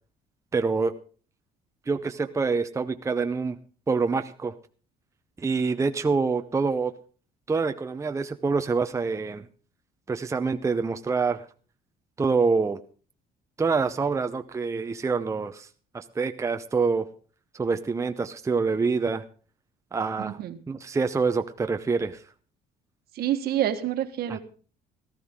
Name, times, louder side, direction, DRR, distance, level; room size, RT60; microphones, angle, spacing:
voice 1, 0.5-0.9 1.9-3.6 3.9-4.5 5.4-6.9 7.5-9.5 10.1-11.5 12.2-12.8 13.6-15.7 15.9-17.1 17.5-19.2 19.9-20.4 20.7-22.2 24.3-24.4, right 4 dB, 15° right, 8 dB, 0.7 m, -26 dB
voice 2, 20.2-20.6 23.1-24.4, right 11 dB, 65° right, 9 dB, 1.5 m, -27 dB
17.5 x 13.0 x 3.7 m, 0.39 s
cardioid pair, 110°, 17 cm